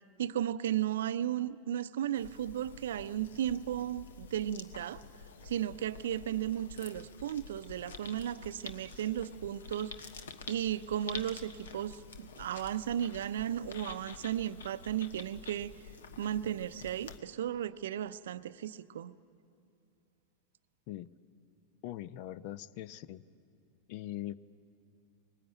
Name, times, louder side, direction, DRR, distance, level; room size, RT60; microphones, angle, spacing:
voice 1, 0.2-5.0 5.4-10.1 10.5-15.7 16.2-19.1, right 11 dB, 75° right, 15 dB, 0.5 m, -35 dB
sound 1, 2.1-17.2, left 5 dB, 80° left, 1.2 m, -49 dB
voice 2, 21.8-23.2 23.9-24.3, left 14 dB, 55° left, 17 dB, 0.6 m, -41 dB
21.0 x 19.0 x 9.1 m, 2.5 s
hypercardioid pair, 100°, 0 cm